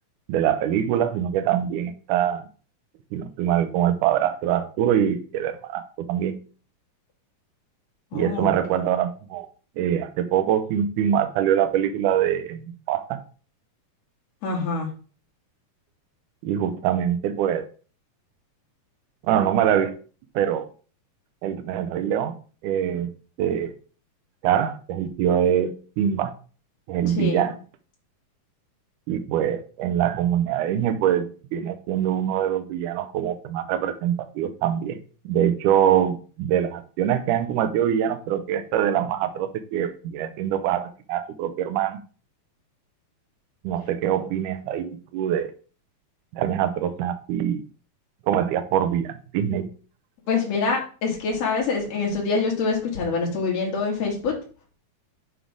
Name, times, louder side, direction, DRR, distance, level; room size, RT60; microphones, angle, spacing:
voice 1, 0.3-2.4 3.1-6.4 8.1-9.5 9.8-13.2 16.4-17.6 19.2-20.0 20.4-20.7 21.4-22.3 22.6-23.1 23.4-23.7 24.4-26.3 26.9-27.5 29.1-35.0 35.3-42.0 43.6-45.5 46.3-47.6 48.3-49.7, right 10 dB, 80° right, 9 dB, 1.9 m, -24 dB
voice 2, 8.1-8.5 14.4-14.9 27.1-27.5 50.3-54.3, left 4 dB, 50° left, -1 dB, 2.7 m, -25 dB
7.3 x 3.7 x 4.8 m, 0.39 s
omnidirectional pair, 4.2 m